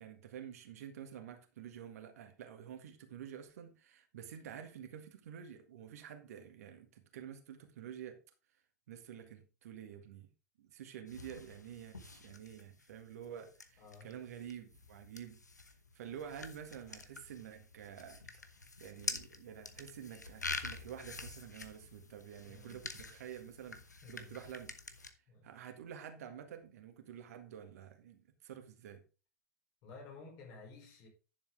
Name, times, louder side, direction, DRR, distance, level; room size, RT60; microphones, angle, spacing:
voice 1, 0.0-8.2 8.9-10.3 10.6-15.4 15.7-18.2 18.5-23.8 24.1-24.7 25.4-29.0, right 9 dB, 65° right, 1.7 m, -49 dB
sound 1, 11.1-25.1, left 3 dB, 85° left, 1.0 m, -47 dB
voice 2, 13.8-14.2 22.5-22.9 24.0-24.5 25.3-25.5 29.8-31.1, left 3 dB, 45° left, 5.2 m, -53 dB
10.5 x 7.2 x 3.5 m
figure-of-eight pair, 85°, 9 cm